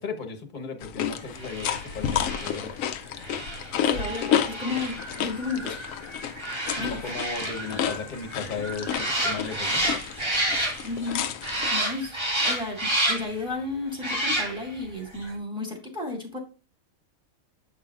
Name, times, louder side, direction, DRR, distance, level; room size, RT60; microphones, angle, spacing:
voice 1, 0.0-2.7 6.8-9.9, left 4 dB, 40° left, 1.2 m, -35 dB
sound 1, 0.8-11.7, left 9 dB, 80° left, 1.0 m, -31 dB
sound 2, 1.3-11.1 11.4-13.4 13.9-14.8 15.1-15.3, right 1 dB, 20° right, 1.6 m, -30 dB
voice 2, 3.9-5.8 6.8-7.0 10.8-11.3 11.7-16.4, left 3 dB, 5° right, 2.2 m, -33 dB
8.0 x 5.5 x 2.4 m
omnidirectional pair, 1.4 m